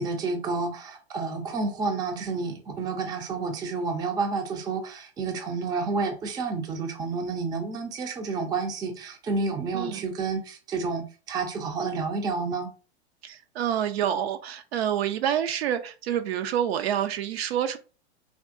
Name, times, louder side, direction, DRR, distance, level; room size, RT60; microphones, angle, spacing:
voice 1, 0.0-12.7, right 4 dB, 15° right, 0.4 m, -30 dB
voice 2, 9.7-10.0 13.2-17.8, right 10 dB, 65° right, 0.5 m, -27 dB
3.5 x 2.6 x 2.4 m
hypercardioid pair, 110°, 33 cm